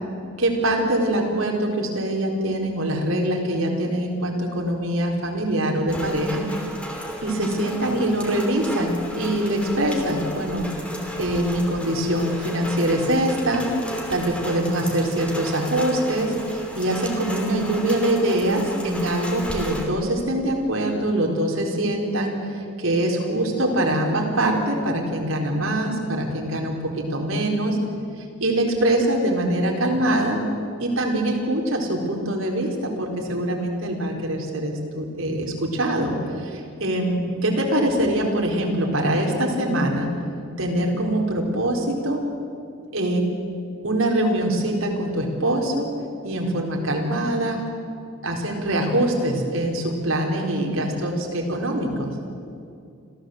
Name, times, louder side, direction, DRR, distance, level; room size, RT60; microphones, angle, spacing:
voice 1, 0.4-6.4 7.2-10.7 11.2-13.7 14.1-27.8 28.2-30.4 30.8-40.1 40.6-42.2 42.9-43.2 43.8-45.9 46.2-47.6 48.2-52.1, right 1 dB, 80° right, 0 dB, 4.2 m, -23 dB
Rain, 5.9-19.8, equal, 5° left, 2.9 m, -33 dB
26.5 x 16.0 x 7.9 m, 2.5 s
head